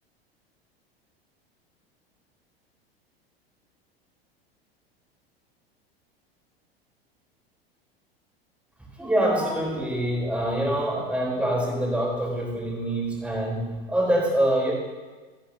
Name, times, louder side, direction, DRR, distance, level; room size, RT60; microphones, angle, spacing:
voice 1, 9.0-14.7, right 1 dB, 5° right, -2 dB, 3.2 m, -25 dB
14.0 x 12.0 x 2.6 m, 1.3 s
figure-of-eight pair, 80°, 31 cm